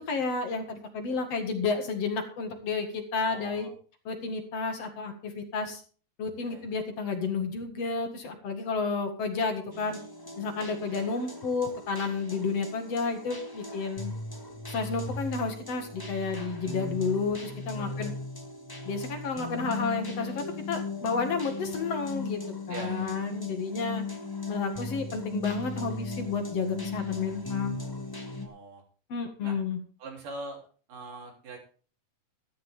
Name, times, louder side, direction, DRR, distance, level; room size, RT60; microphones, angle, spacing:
voice 1, 0.0-3.7 4.1-5.8 6.2-10.0 10.4-14.1 14.7-18.1 18.8-24.0 24.5-27.8 29.1-29.8, left 4 dB, 55° left, 5 dB, 2.7 m, -31 dB
voice 2, 3.2-3.7 6.4-6.7 10.9-11.0 17.8-18.1 22.7-23.1 28.4-28.8 29.4-29.6 30.0-30.6 30.9-31.6, right 2 dB, 90° right, 1 dB, 5.0 m, -42 dB
sound 1, 9.7-28.5, left 3 dB, 15° left, 0.7 m, -37 dB
13.5 x 13.0 x 3.6 m, 0.40 s
omnidirectional pair, 3.6 m